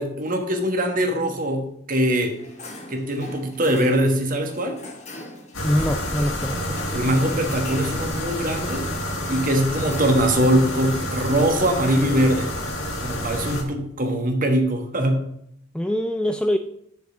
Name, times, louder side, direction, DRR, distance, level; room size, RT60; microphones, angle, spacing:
voice 1, 0.0-2.3 2.9-4.8 6.9-8.9 9.3-12.5 13.0-15.3, right 1 dB, 45° right, 4 dB, 1.3 m, -22 dB
sound 1, 2.2-12.0, left 1 dB, 35° left, 1.4 m, -41 dB
sound 2, 5.5-13.6, left 1 dB, 80° left, 1.7 m, -29 dB
voice 2, 5.6-6.8 15.7-16.6, equal, 5° left, 7 dB, 0.3 m, -24 dB
6.4 x 5.2 x 7.0 m, 0.73 s
head